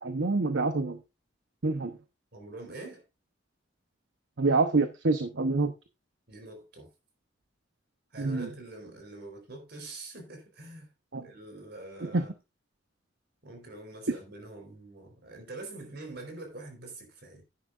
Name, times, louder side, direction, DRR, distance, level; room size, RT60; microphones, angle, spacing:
voice 1, 0.0-1.0 1.6-2.0 4.4-5.7 8.2-8.5 11.1-11.2 12.0-12.3, right 3 dB, 75° right, 0.9 m, -27 dB
voice 2, 2.3-3.0 6.3-6.9 8.1-10.9 11.2-12.3 13.4-17.4, right 2 dB, 60° right, 4.1 m, -45 dB
10.5 x 10.0 x 2.5 m
head